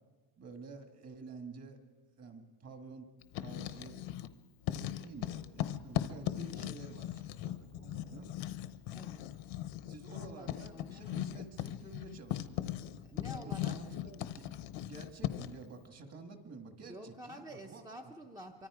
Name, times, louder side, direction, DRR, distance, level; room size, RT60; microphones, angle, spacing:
voice 1, 0.4-1.8 2.2-3.1 3.4-4.0 4.7-8.3 9.9-12.6 13.3-14.4 14.9-18.1, right 4 dB, 35° right, 6 dB, 1.8 m, -50 dB
Writing, 3.2-4.3 4.6-15.6, left 12 dB, 75° left, 1.0 m, -39 dB
voice 2, 8.9-9.4 10.1-11.2 13.1-13.8 16.8-18.7, equal, 10° right, 3 dB, 0.7 m, -49 dB
25.5 x 24.0 x 4.9 m, 1.4 s
cardioid pair, 170°, 46 cm